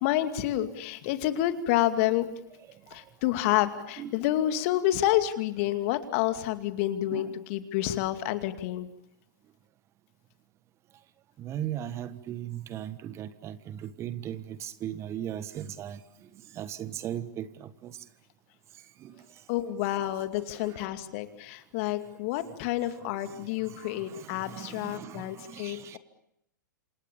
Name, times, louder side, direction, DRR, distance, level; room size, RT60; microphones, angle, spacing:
voice 1, 0.0-2.3 2.9-8.9 19.5-26.0, left 13 dB, 45° left, 9 dB, 2.4 m, -29 dB
voice 2, 11.4-16.0 16.5-18.0 19.0-19.1 20.5-20.9 23.3-26.0, right 10 dB, 25° right, 14 dB, 1.4 m, -38 dB
28.0 x 27.5 x 7.2 m, 0.79 s
figure-of-eight pair, 110°, 10 cm